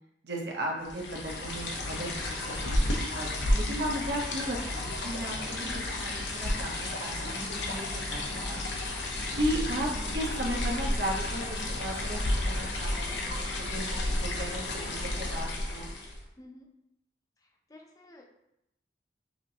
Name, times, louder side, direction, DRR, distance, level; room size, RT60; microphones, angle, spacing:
voice 1, 0.2-2.8 3.1-8.6 9.3-9.9 10.1-15.9, equal, 65° right, -1 dB, 0.9 m, -35 dB
sound 1, 0.9-16.3, left 1 dB, 80° left, 0.7 m, -32 dB
voice 2, 16.4-16.7 17.4-18.3, left 1 dB, 20° left, 1 dB, 0.5 m, -51 dB
5.8 x 2.7 x 2.8 m, 0.84 s
head